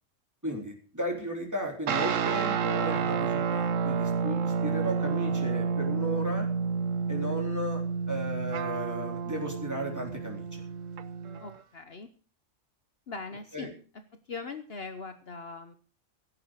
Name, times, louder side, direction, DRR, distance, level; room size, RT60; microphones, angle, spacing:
voice 1, 0.4-6.5 7.1-10.6 13.5-13.7, equal, 15° right, 0 dB, 3.8 m, -35 dB
sound 1, 1.9-11.6, right 6 dB, 80° right, 1.3 m, -30 dB
voice 2, 11.4-12.1 13.1-13.7 14.3-15.8, left 4 dB, 55° left, 8 dB, 1.3 m, -40 dB
16.5 x 8.3 x 6.5 m, 0.40 s
omnidirectional pair, 1.3 m